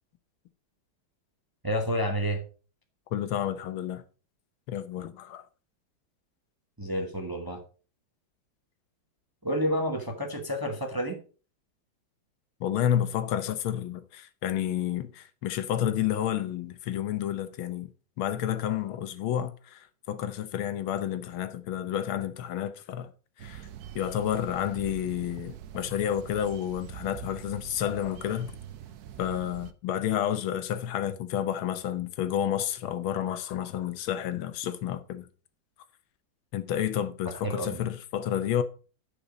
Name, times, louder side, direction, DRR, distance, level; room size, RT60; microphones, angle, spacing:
voice 1, 1.6-2.4 6.8-7.6 9.4-11.2 37.2-37.8, equal, 15° right, 1.0 m, -30 dB
voice 2, 3.1-4.0 4.7-5.4 12.6-17.9 18.2-23.1 23.4-23.7 23.9-28.5 29.2-35.3 36.5-38.6, left 10 dB, 85° left, 1.7 m, -30 dB
sound 1, 23.4-29.7, right 10 dB, 65° right, 1.0 m, -44 dB
10.0 x 5.3 x 5.1 m
omnidirectional pair, 2.2 m